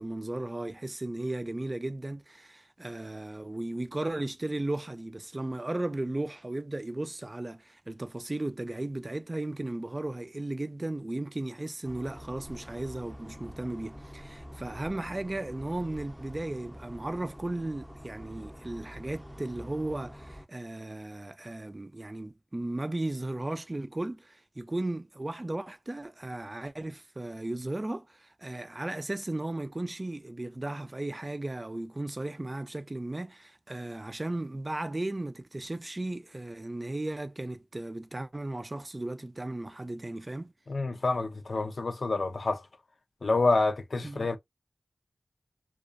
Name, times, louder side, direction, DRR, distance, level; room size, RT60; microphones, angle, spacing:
voice 1, 0.0-40.5 44.0-44.3, right 2 dB, 35° right, 0.4 m, -35 dB
sound 1, 11.8-20.5, equal, 5° left, 0.6 m, -46 dB
voice 2, 40.7-42.6 43.2-44.4, left 3 dB, 70° left, 0.4 m, -28 dB
2.4 x 2.3 x 2.4 m
cardioid pair, 45°, 0 cm